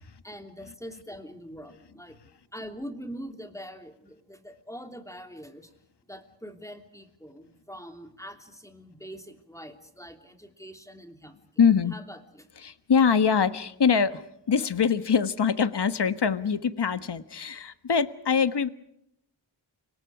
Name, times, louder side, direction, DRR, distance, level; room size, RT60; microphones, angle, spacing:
voice 1, 0.2-2.2 2.5-5.7 6.1-11.3 11.9-12.5, equal, 5° left, 6 dB, 3.1 m, -43 dB
voice 2, 11.6-11.9 12.6-18.7, left 6 dB, 60° left, 12 dB, 1.4 m, -24 dB
29.5 x 25.0 x 4.9 m, 0.76 s
wide cardioid pair, 85°, 45 cm